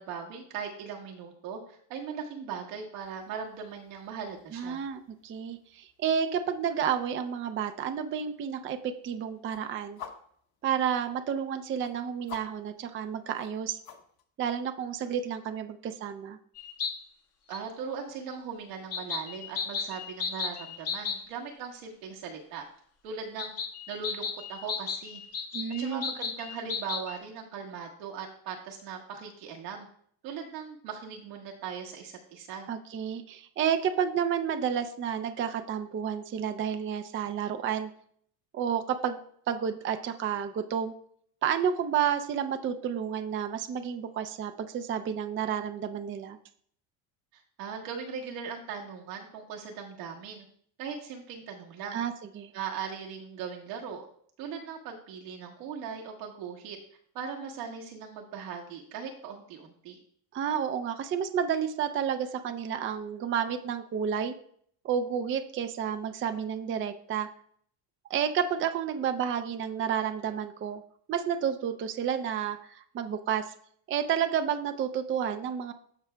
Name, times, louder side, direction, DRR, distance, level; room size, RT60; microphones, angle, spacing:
voice 1, 0.0-4.8 17.5-22.6 23.0-23.5 23.9-25.2 25.8-29.9 30.2-32.7 47.3-50.4 50.8-52.0 52.5-54.1 54.4-56.8 57.1-60.0, right 6 dB, 85° right, 0 dB, 1.6 m, -39 dB
sound 1, 3.0-14.2, left 8 dB, 45° left, 1.1 m, -53 dB
voice 2, 4.5-10.0 10.6-13.8 14.4-16.4 25.5-26.0 32.7-37.9 38.5-39.2 39.5-40.9 41.4-46.4 51.9-52.5 60.3-64.3 64.8-67.3 68.1-70.8 71.1-73.4 73.9-75.7, right 8 dB, 25° right, 8 dB, 0.4 m, -30 dB
sound 2, 16.6-16.9 17.5-17.6 18.9-21.2 23.4-27.2, left 6 dB, 30° left, 0.8 m, -34 dB
13.5 x 4.7 x 2.3 m, 0.62 s
supercardioid pair, 105°, 49 cm